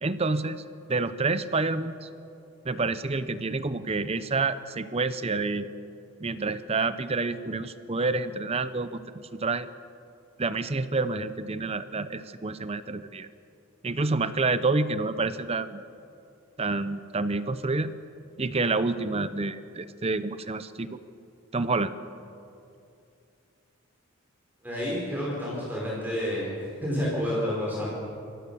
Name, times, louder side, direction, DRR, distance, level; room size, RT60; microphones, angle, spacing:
voice 1, 0.0-0.6 0.9-2.1 2.6-5.7 6.2-9.7 10.4-13.3 13.8-15.8 16.6-17.9 18.4-21.0 21.5-21.9, right 3 dB, 30° right, 13 dB, 0.7 m, -28 dB
voice 2, 24.6-26.5 26.8-27.9, equal, 10° right, -6 dB, 4.8 m, -29 dB
28.0 x 15.0 x 7.0 m, 2.6 s
head